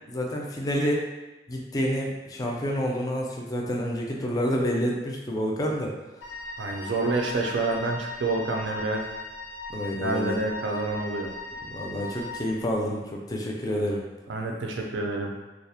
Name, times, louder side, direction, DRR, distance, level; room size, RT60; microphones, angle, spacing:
voice 1, 0.1-1.0 1.5-5.9 9.7-10.4 11.7-14.0, equal, 20° left, -1 dB, 0.3 m, -28 dB
Wind instrument woodwind instrument, 6.2-12.6, left 2 dB, 85° left, 0.5 m, -38 dB
voice 2, 6.6-9.0 9.9-11.3 14.3-15.3, right 2 dB, 85° right, 1 dB, 0.4 m, -28 dB
2.3 x 2.0 x 2.7 m, 1.1 s
head